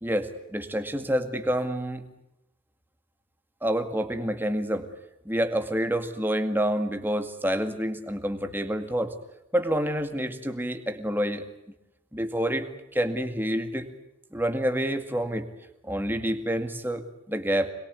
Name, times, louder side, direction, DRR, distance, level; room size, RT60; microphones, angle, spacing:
voice 1, 0.0-2.1 3.6-4.9 5.3-9.1 9.5-11.5 12.1-13.9 14.3-15.5 15.8-17.7, equal, 10° right, 7 dB, 2.0 m, -28 dB
26.5 x 22.0 x 8.4 m, 0.85 s
head